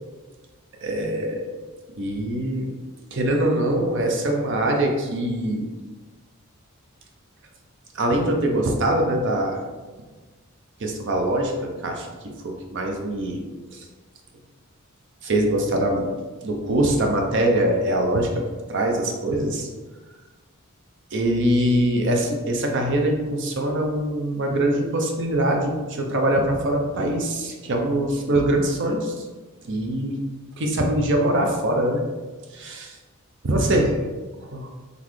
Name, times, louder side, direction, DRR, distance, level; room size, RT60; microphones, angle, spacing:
voice 1, 0.8-1.5 2.0-2.7 3.1-5.7 7.9-9.6 10.8-12.1 12.4-13.4 13.7-13.9 15.2-16.1 16.4-18.3 18.7-19.7 21.1-29.3 29.6-30.2 30.6-32.0 32.5-33.0 33.4-34.0 34.4-34.7, right 1 dB, 60° right, 2 dB, 0.6 m, -23 dB
4.0 x 3.3 x 3.1 m, 1.3 s
head